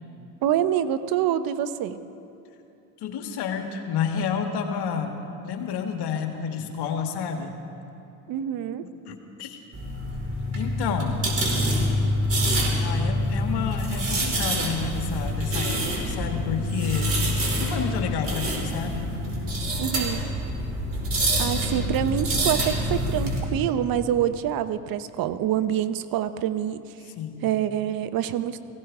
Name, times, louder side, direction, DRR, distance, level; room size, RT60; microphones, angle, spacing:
voice 1, 0.4-2.0 8.3-8.8 19.8-20.2 21.4-26.8 27.4-28.6, right 10 dB, 50° right, 12 dB, 0.8 m, -26 dB
voice 2, 3.0-7.6 9.1-9.6 10.6-11.3 12.8-17.2 17.6-19.1 27.2-27.5, left 7 dB, 60° left, 5 dB, 1.7 m, -30 dB
sound 1, 9.7-23.4, equal, 30° right, 4.6 m, -26 dB
20.0 x 16.0 x 3.6 m, 2.7 s
hypercardioid pair, 65°, 44 cm